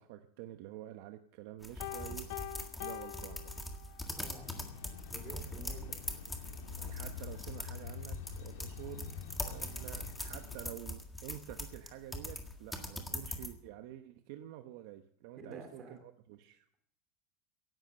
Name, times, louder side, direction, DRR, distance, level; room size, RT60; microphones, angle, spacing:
voice 1, 0.0-2.4 2.8-3.6 5.5-6.1 6.8-9.1 9.5-16.6, right 13 dB, 60° right, 8 dB, 0.9 m, -49 dB
sound 1, 1.6-13.5, left 1 dB, 5° left, 1.8 m, -42 dB
Piano, 1.8-4.2, left 16 dB, 65° left, 0.6 m, -44 dB
voice 2, 4.2-4.7 5.1-5.9 15.4-16.0, right 3 dB, 25° right, 4 dB, 3.8 m, -49 dB
sound 2, 4.4-10.7, left 8 dB, 85° left, 2.1 m, -47 dB
17.0 x 11.5 x 6.6 m, 0.67 s
supercardioid pair, 165°, 0 cm